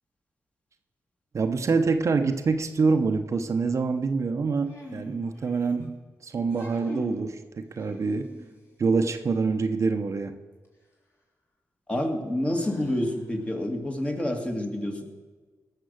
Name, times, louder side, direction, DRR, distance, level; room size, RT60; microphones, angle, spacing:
voice 1, 1.3-8.3 8.8-10.4, right 4 dB, 55° right, 7 dB, 0.8 m, -26 dB
sound 1, 4.6-5.9 6.4-7.3 7.8-8.7 10.6-10.7 12.6-13.4, left 1 dB, 40° left, 3.7 m, -42 dB
voice 2, 11.9-15.0, left 1 dB, 20° left, 3 dB, 2.1 m, -28 dB
17.0 x 6.8 x 6.5 m, 1.4 s
cardioid pair, 65°, 6 cm